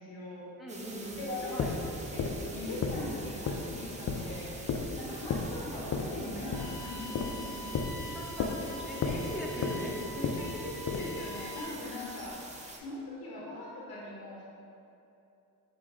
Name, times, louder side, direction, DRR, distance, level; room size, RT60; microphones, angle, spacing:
voice 1, 0.0-0.5 1.2-4.5 5.0-7.6 10.2-12.4 12.8-14.4, left 2 dB, 80° left, -5 dB, 0.8 m, -41 dB
voice 2, 0.6-1.2 1.5-1.7 8.1-8.5 8.8-9.9, equal, ahead, -5 dB, 1.0 m, -39 dB
sound 1, 0.7-12.8, right 2 dB, 20° right, 0.5 m, -46 dB
sound 2, 1.1-11.2, left 4 dB, 45° left, 0.5 m, -34 dB
sound 3, 6.5-11.6, left 1 dB, 70° right, 1.2 m, -45 dB
4.8 x 2.9 x 3.6 m, 2.8 s
cardioid pair, 60°, 36 cm